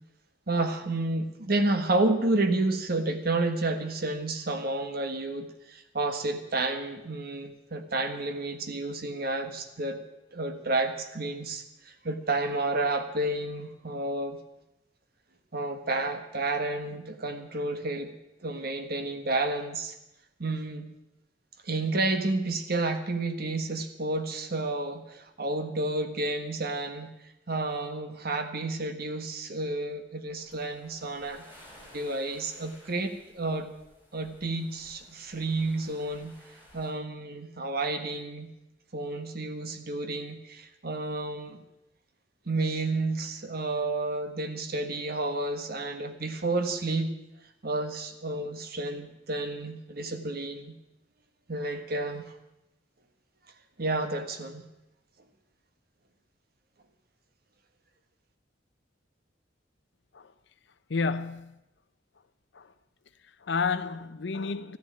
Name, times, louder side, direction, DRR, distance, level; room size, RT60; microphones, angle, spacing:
voice 1, 0.5-10.0 10.3-14.4 15.5-18.1 18.4-19.9 20.4-20.9 21.6-27.1 27.5-31.4 31.9-33.7 34.1-36.3 36.7-38.5 38.9-41.6 42.5-47.1 47.6-50.7 51.5-52.2 53.8-54.7, right 2 dB, 55° right, 1.5 m, -30 dB
sound 1, 30.3-36.9, equal, 10° right, 5.3 m, -56 dB
voice 2, 60.9-61.6 62.5-62.7 63.3-64.8, left 4 dB, 65° left, 0.6 m, -31 dB
14.0 x 10.5 x 8.7 m
head